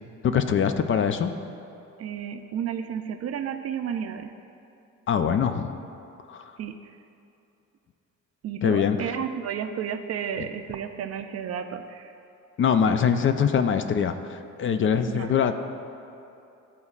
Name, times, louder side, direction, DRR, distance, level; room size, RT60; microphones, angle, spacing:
voice 1, 0.2-1.3 5.1-5.7 6.3-6.5 8.6-9.1 12.6-15.6, left 7 dB, 45° left, 9 dB, 0.4 m, -23 dB
voice 2, 2.0-4.3 6.6-6.9 8.4-12.1 15.1-15.4, right 8 dB, 55° right, 7 dB, 0.5 m, -32 dB
12.5 x 4.1 x 2.4 m, 2.7 s
cardioid pair, 90°, 30 cm